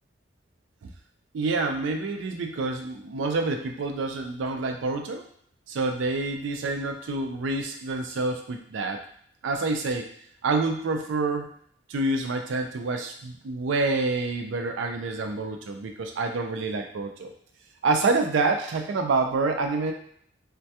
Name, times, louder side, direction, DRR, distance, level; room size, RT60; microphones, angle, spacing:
voice 1, 1.3-5.2 5.7-9.0 9.4-10.1 10.4-11.5 11.9-17.3 17.8-19.9, right 3 dB, 80° right, 4 dB, 0.4 m, -27 dB
2.2 x 2.2 x 2.7 m, 0.64 s
head